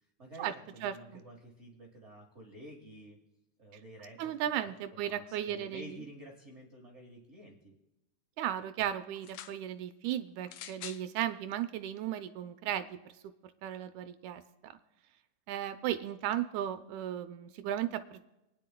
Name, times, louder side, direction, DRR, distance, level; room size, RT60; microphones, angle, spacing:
voice 1, 0.2-3.2 3.6-7.7, right 1 dB, 45° right, -1 dB, 0.8 m, -51 dB
voice 2, 0.8-1.2 4.2-6.0 8.4-13.0 13.6-14.7 15.5-18.3, right 11 dB, 80° right, 9 dB, 1.9 m, -35 dB
sound 1, 9.1-9.6 10.5-11.1 12.0-12.1, left 11 dB, 80° left, 1.6 m, -46 dB
27.5 x 9.9 x 2.2 m, 0.95 s
omnidirectional pair, 3.6 m